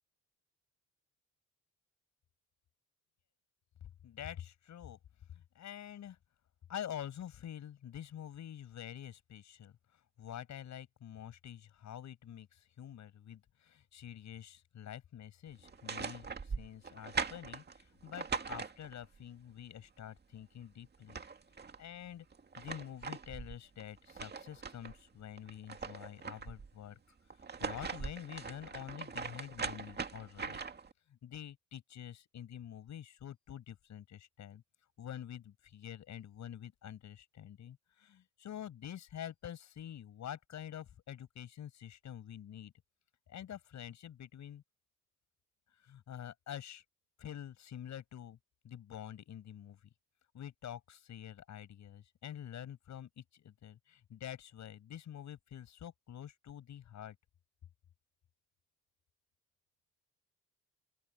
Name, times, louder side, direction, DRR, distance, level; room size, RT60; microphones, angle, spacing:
voice 1, 4.0-5.0 5.3-6.2 6.7-9.7 10.2-21.2 21.8-22.3 22.6-27.0 27.6-30.6 31.1-34.6 35.0-42.7 43.3-44.6 45.8-46.8 47.2-48.4 48.6-49.8 50.3-57.2, left 10 dB, 70° left, 7.8 m, -47 dB
sound 1, 15.6-19.2 20.6-20.7 20.9-21.8 22.3-25.0 25.4-26.7 27.3-30.9, right 5 dB, 35° right, 2.3 m, -41 dB
open air
cardioid pair, 90°, 30 cm